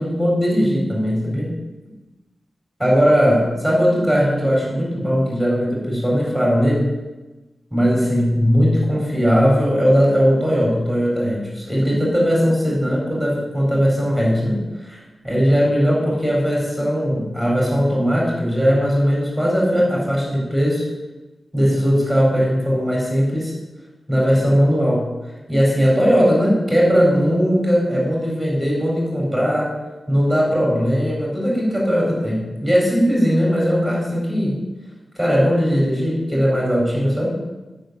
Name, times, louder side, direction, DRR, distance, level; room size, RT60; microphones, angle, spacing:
voice 1, 0.0-1.5 2.8-6.9 7.7-14.6 14.8-20.8 21.5-23.5 24.1-25.1 25.5-29.7 30.1-34.6 35.2-37.4, equal, 5° left, -3 dB, 4.0 m, -18 dB
8.9 x 6.0 x 8.0 m, 1.1 s
wide cardioid pair, 140°, 0 cm